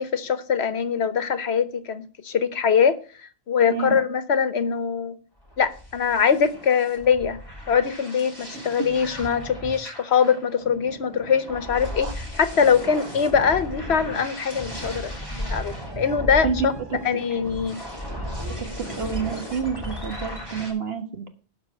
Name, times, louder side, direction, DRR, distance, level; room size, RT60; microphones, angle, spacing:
voice 1, 0.0-3.0 3.5-5.2 5.6-7.4 7.7-16.7 17.0-17.8, left 6 dB, 85° left, 1.3 m, -22 dB
sound 1, 5.4-20.7, equal, 20° left, 6.4 m, -35 dB
voice 2, 16.4-17.0 18.6-21.3, right 6 dB, 70° right, 1.8 m, -29 dB
12.0 x 4.8 x 8.1 m
omnidirectional pair, 1.1 m